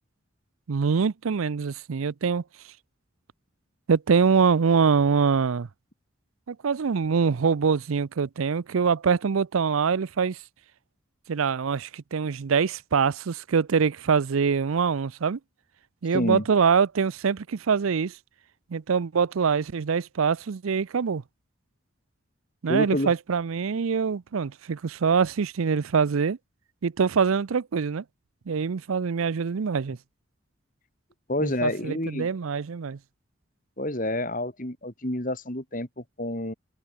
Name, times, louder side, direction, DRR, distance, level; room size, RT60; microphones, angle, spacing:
voice 1, 0.7-2.4 3.9-5.7 6.5-10.4 11.3-15.4 16.0-18.2 18.7-21.2 22.6-26.4 26.8-28.0 28.5-30.0 31.4-33.0, right 5 dB, 85° right, 0.5 m, -24 dB
voice 2, 16.1-16.4 22.7-23.1 31.3-32.3 33.8-36.5, left 1 dB, 40° left, 3.3 m, -28 dB
head